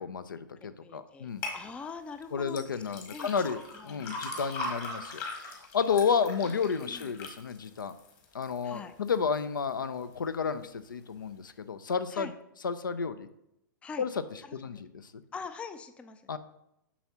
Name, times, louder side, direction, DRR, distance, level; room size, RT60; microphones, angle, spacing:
voice 1, 0.0-1.4 2.3-7.9 8.3-12.3 12.6-13.3 14.0-14.1 14.5-14.9 16.3-16.4, left 6 dB, 75° left, 12 dB, 0.5 m, -31 dB
voice 2, 0.6-2.6 2.9-3.3 3.7-4.4 5.9-6.0 6.9-7.1 8.6-8.9 12.1-12.3 13.8-14.1 14.4-14.8 15.3-16.3, left 5 dB, 10° left, 9 dB, 0.4 m, -44 dB
sound 1, 1.4-1.6 2.5-8.6 9.1-9.6 10.1-10.2, left 2 dB, 30° left, 1.4 m, -40 dB
7.1 x 6.1 x 2.8 m, 0.81 s
figure-of-eight pair, 115°, 11 cm